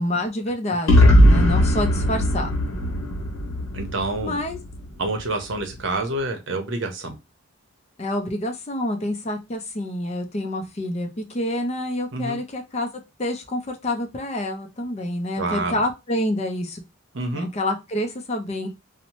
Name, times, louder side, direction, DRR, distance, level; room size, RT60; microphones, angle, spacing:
voice 1, 0.0-2.5 4.2-4.6 8.0-12.9 13.2-16.8 17.3-18.7, left 1 dB, 30° left, 5 dB, 0.4 m, -27 dB
sound 1, 0.9-4.8, equal, 75° left, 0.8 m, -18 dB
voice 2, 3.7-4.4 5.0-7.2 12.1-12.4 15.4-15.8 17.1-17.5, right 2 dB, 60° right, 5 dB, 0.7 m, -28 dB
2.7 x 2.0 x 2.9 m, 0.25 s
head